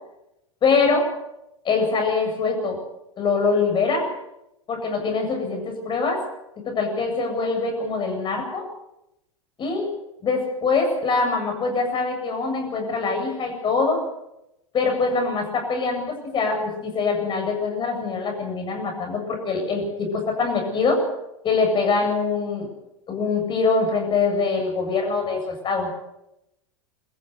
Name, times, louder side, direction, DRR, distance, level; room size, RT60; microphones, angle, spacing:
voice 1, 0.6-1.1 1.6-2.8 3.2-4.1 4.7-6.2 6.7-8.6 9.6-9.9 10.2-14.0 14.7-21.0 21.4-22.7 23.1-25.9, left 4 dB, 30° left, 3 dB, 7.8 m, -23 dB
23.5 x 14.5 x 8.2 m, 0.86 s
hypercardioid pair, 95°, 17 cm